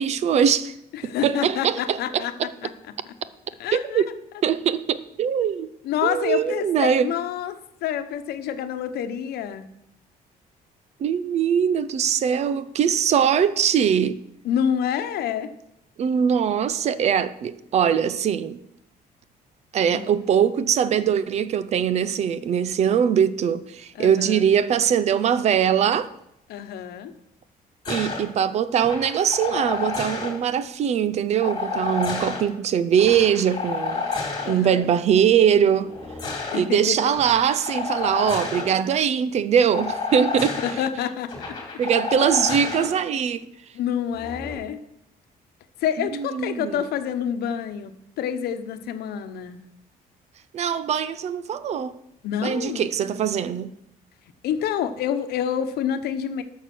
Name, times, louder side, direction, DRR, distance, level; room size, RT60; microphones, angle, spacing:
voice 1, 0.0-0.7 1.0-2.5 3.7-4.1 4.4-5.7 6.0-7.1 11.0-14.2 16.0-18.6 19.7-26.1 27.9-34.0 34.5-35.9 36.5-40.6 41.8-43.4 46.0-46.8 50.5-52.0 52.4-53.7, right 8 dB, 45° right, 0.6 m, -22 dB
voice 2, 0.9-2.7 3.6-4.0 5.8-9.7 14.4-15.5 19.9-20.1 23.9-24.5 26.5-27.1 34.4-34.9 36.5-37.0 40.6-41.6 43.7-44.8 45.8-49.6 52.2-52.9 54.4-56.4, left 9 dB, 85° left, 1.0 m, -28 dB
sound 1, 27.8-28.2 28.8-30.3 31.4-32.4 32.9-34.5 35.8-36.6 37.1-38.7 39.7-40.7 41.3-42.9 44.1-44.5, left 4 dB, 25° left, 2.5 m, -30 dB
13.0 x 6.6 x 6.1 m
cardioid pair, 175°, 16 cm